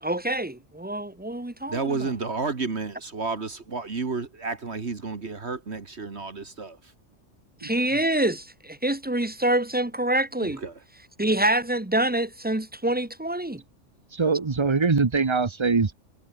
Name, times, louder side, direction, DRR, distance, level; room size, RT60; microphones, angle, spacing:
voice 1, 0.0-2.0 7.6-10.6 11.2-13.6, right 1 dB, 10° right, 1.3 m, -26 dB
voice 2, 1.7-6.9 10.4-10.8, right 4 dB, 60° right, 2.2 m, -31 dB
voice 3, 14.1-15.9, right 4 dB, 25° right, 0.9 m, -23 dB
omnidirectional pair, 1.3 m